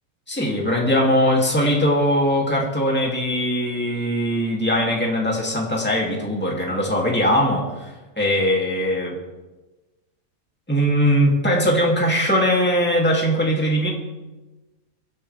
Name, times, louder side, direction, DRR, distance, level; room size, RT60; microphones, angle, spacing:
voice 1, 0.3-9.2 10.7-13.9, equal, 5° left, -2 dB, 2.5 m, -20 dB
23.5 x 12.0 x 3.4 m, 1.1 s
omnidirectional pair, 1.5 m